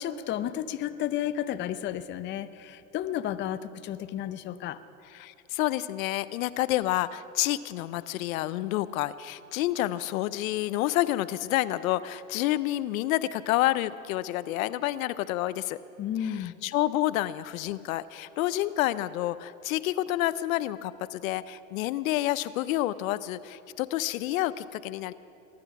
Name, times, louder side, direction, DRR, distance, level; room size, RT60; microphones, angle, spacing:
voice 1, 0.0-4.8 16.0-16.6, left 11 dB, 25° left, 11 dB, 0.5 m, -32 dB
voice 2, 5.1-15.8 16.2-25.1, left 15 dB, 70° left, 16 dB, 0.6 m, -29 dB
20.0 x 10.5 x 5.9 m, 2.7 s
hypercardioid pair, 105°, 43 cm